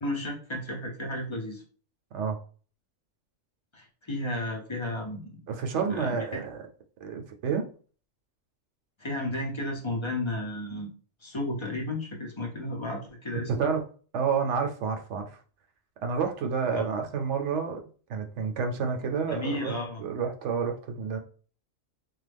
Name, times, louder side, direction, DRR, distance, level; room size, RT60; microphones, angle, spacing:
voice 1, 0.0-1.6 3.7-5.4 5.9-6.4 9.0-10.9 11.2-13.7 19.3-20.0, left 1 dB, 35° left, 0.4 m, -33 dB
voice 2, 5.5-6.6 7.0-7.7 13.6-13.8 14.1-15.4 16.0-19.7 20.0-21.2, right 6 dB, 65° right, 0.9 m, -29 dB
3.1 x 2.2 x 3.3 m
omnidirectional pair, 1.4 m